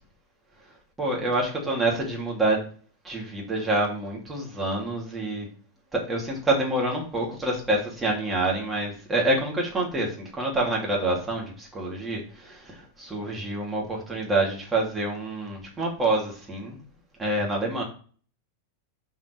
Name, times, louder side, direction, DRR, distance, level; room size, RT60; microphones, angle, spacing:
voice 1, 1.0-2.7 3.0-5.5 5.9-16.8 17.2-17.8, right 2 dB, 15° right, -2 dB, 3.0 m, -27 dB
6.2 x 5.6 x 4.7 m, 0.41 s
figure-of-eight pair, 90°, 0 cm